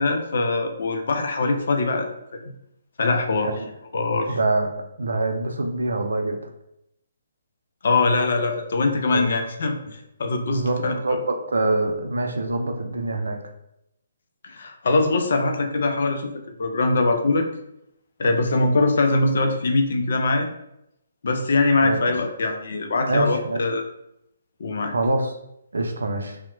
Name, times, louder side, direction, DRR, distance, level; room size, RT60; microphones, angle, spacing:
voice 1, 0.0-2.5 3.0-3.5 3.9-4.4 7.8-10.9 14.4-16.3 16.6-17.5 18.2-20.5 21.2-23.8 24.6-24.9, left 3 dB, 60° left, 5 dB, 0.4 m, -22 dB
voice 2, 4.3-4.7 5.0-6.4 9.1-9.4 10.5-13.4 21.8-22.1 23.0-23.6 24.9-25.3 25.7-26.4, right 2 dB, 70° right, 5 dB, 0.4 m, -25 dB
2.8 x 2.0 x 2.5 m, 0.81 s
figure-of-eight pair, 135°, 0 cm